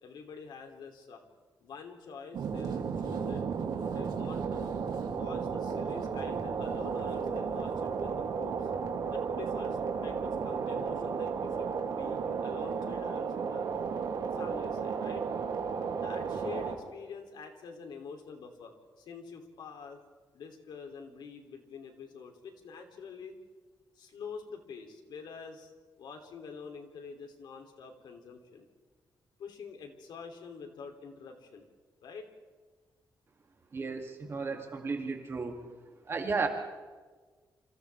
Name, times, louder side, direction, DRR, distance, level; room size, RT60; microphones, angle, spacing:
voice 1, 0.0-1.2 1.6-3.4 3.8-4.7 5.1-8.7 9.1-13.6 14.3-15.2 15.9-20.0 20.3-23.3 23.9-25.7 26.0-28.7 29.4-31.7 32.0-32.3, left 5 dB, 85° left, 4 dB, 3.0 m, -46 dB
sound 1, 2.3-16.7, right 6 dB, 75° right, 2.7 m, -33 dB
voice 2, 33.7-35.6 36.0-36.5, right 4 dB, 35° right, 2 dB, 2.6 m, -33 dB
28.5 x 27.0 x 3.5 m, 1.4 s
wide cardioid pair, 170°, 7 cm